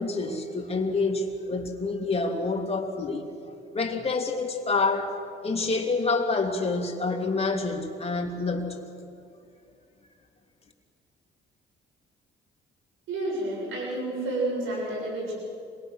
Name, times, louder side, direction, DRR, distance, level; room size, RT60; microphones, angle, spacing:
voice 1, 0.0-3.3 3.7-5.1 5.4-8.8, left 3 dB, 30° left, 2 dB, 3.2 m, -27 dB
voice 2, 13.1-15.3, right 2 dB, 85° right, -3 dB, 7.1 m, -30 dB
27.0 x 21.0 x 6.5 m, 2.3 s
cardioid pair, 90°, 20 cm